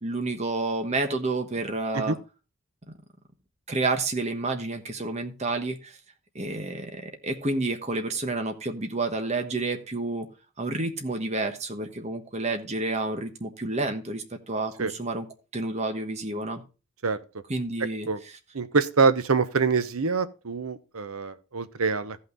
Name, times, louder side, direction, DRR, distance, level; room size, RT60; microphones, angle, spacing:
voice 1, 0.0-2.2 3.7-6.0 6.3-10.3 10.6-15.3 15.5-16.6 17.5-18.1, right 2 dB, 30° right, 1.2 m, -29 dB
voice 2, 18.5-22.2, right 4 dB, 75° right, 0.9 m, -25 dB
14.5 x 5.7 x 3.9 m
head